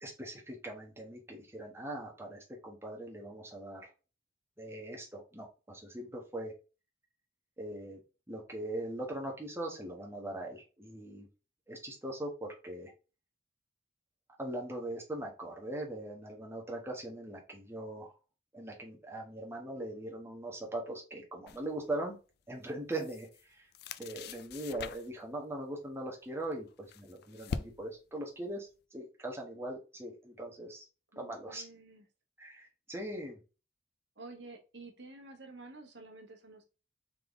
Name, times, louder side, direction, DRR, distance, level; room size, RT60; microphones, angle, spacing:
voice 1, 0.0-3.9 4.6-6.5 7.6-8.0 8.3-11.3 11.7-12.9 14.4-18.1 18.5-22.2 22.5-23.7 24.0-30.8 31.2-31.7 32.4-33.4, right 1 dB, 15° right, 1.0 m, -41 dB
sound 1, 21.5-21.7 22.6-23.4 23.7-25.3 26.4-28.1, left 5 dB, 55° left, 0.3 m, -43 dB
voice 2, 31.1-32.0 34.2-36.7, right 3 dB, 65° right, 1.1 m, -50 dB
3.7 x 3.6 x 3.8 m
head